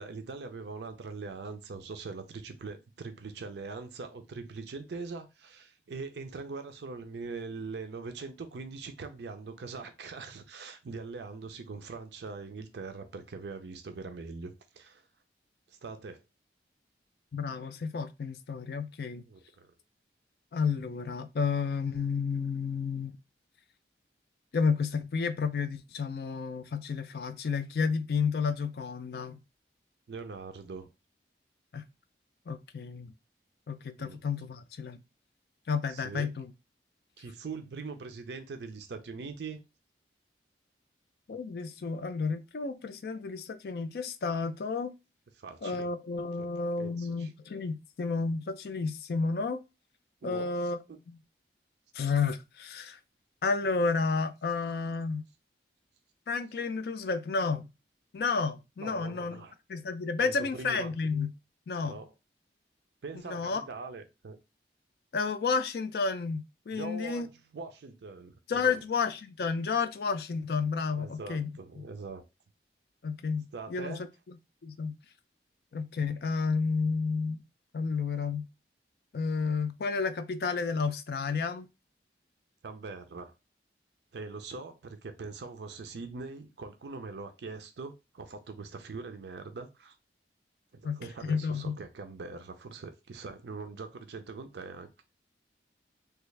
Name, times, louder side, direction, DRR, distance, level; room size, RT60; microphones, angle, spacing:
voice 1, 0.0-15.0 15.7-16.2 19.3-19.7 30.1-30.9 34.0-34.2 35.9-36.3 37.2-39.6 45.4-45.9 46.4-46.5 46.8-47.3 50.2-50.5 50.9-51.0 58.8-59.5 60.2-60.9 61.8-62.1 63.0-64.4 66.7-68.8 70.9-72.2 73.5-74.1 82.6-83.3 84.1-89.9 90.7-94.9, right 4 dB, 75° right, 0.5 m, -42 dB
voice 2, 17.3-19.2 20.5-23.2 24.5-29.4 31.7-31.8 32.5-33.1 33.7-35.0 35.7-36.5 41.3-44.9 45.6-49.6 50.2-50.8 51.1-51.2 51.9-53.0 53.4-55.2 56.3-57.7 58.1-59.4 59.7-61.3 61.7-62.0 63.3-63.6 65.1-67.3 68.5-71.5 71.8-71.9 73.0-74.0 74.3-74.4 74.6-74.9 75.7-77.4 77.7-78.5 79.1-81.7 90.8-91.8, left 5 dB, 60° left, 0.4 m, -31 dB
3.3 x 2.3 x 3.2 m
head